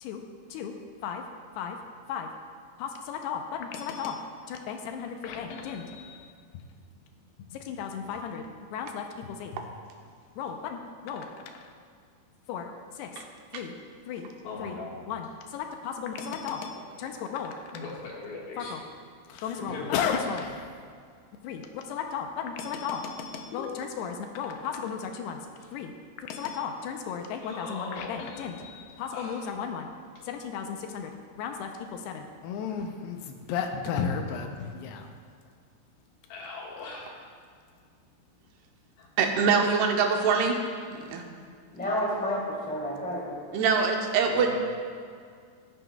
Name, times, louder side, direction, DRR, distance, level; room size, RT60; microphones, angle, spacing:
voice 1, 2.8-4.2 4.5-6.3 7.7-8.4 8.7-9.5 10.4-10.8 11.0-11.3 11.5-11.6 12.5-12.7 13.0-13.1 13.5-13.7 14.1-14.3 14.6-14.8 15.1-17.5 18.6-18.8 19.3-20.7 21.4-25.4 25.7-25.9 26.3-29.9 30.3-31.1 31.4-35.1, left 7 dB, 85° left, 4 dB, 2.6 m, -34 dB
voice 2, 14.4-15.0 16.7-17.0 17.7-18.7 19.5-20.3 25.6-25.7 27.4-28.2 29.1-29.5 32.5-32.8 34.3-34.4 35.0-35.1 36.3-37.3 39.0-39.1 44.2-44.6, left 3 dB, 70° left, -4 dB, 3.3 m, -39 dB
voice 3, 39.2-40.6 41.0-41.2 43.5-44.6, right 5 dB, 80° right, 3 dB, 2.7 m, -24 dB
voice 4, 41.7-43.3, equal, 5° left, -6 dB, 1.7 m, -30 dB
14.0 x 11.0 x 2.3 m, 2.1 s
omnidirectional pair, 4.8 m